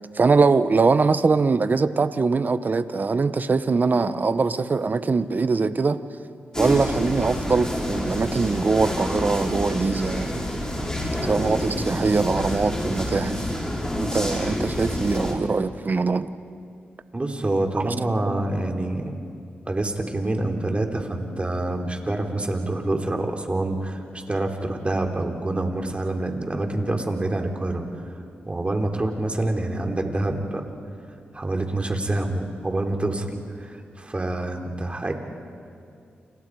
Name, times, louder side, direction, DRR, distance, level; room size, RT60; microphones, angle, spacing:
voice 1, 0.1-6.0 6.6-10.5 11.2-13.4 13.9-16.3 17.8-17.9, right 4 dB, 45° right, 1.1 m, -22 dB
sound 1, 6.5-15.3, left 1 dB, 15° left, 7.1 m, -28 dB
voice 2, 17.1-19.1 19.7-27.8 28.5-30.6 31.3-33.3 33.6-35.1, right 2 dB, 30° right, 3.6 m, -26 dB
29.5 x 28.0 x 4.9 m
cardioid pair, 50°, 4 cm